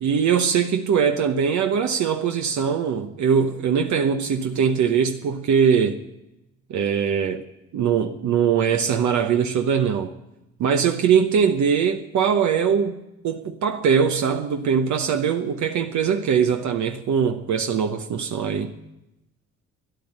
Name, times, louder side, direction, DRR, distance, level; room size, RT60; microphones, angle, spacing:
voice 1, 0.0-6.0 6.7-7.4 7.7-10.1 10.6-18.7, right 7 dB, 70° right, 1.0 m, -21 dB
13.0 x 10.5 x 9.7 m
cardioid pair, 90°, 30 cm